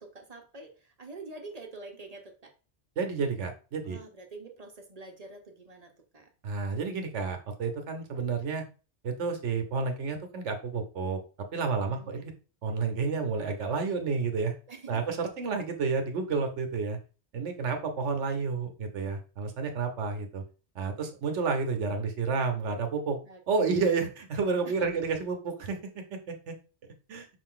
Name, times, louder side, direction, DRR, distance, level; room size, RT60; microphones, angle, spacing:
voice 1, 0.0-2.5 3.9-6.3 11.8-12.3 14.7-15.0 23.2-23.8 24.6-24.9, right 3 dB, 40° right, 3 dB, 0.8 m, -46 dB
voice 2, 3.0-4.0 6.4-8.6 9.0-11.2 11.5-12.3 12.6-14.5 14.9-17.0 17.3-20.4 20.7-23.2 23.5-26.5 27.1-27.3, right 4 dB, 75° right, 6 dB, 1.1 m, -30 dB
5.4 x 2.5 x 3.7 m, 0.35 s
omnidirectional pair, 1.2 m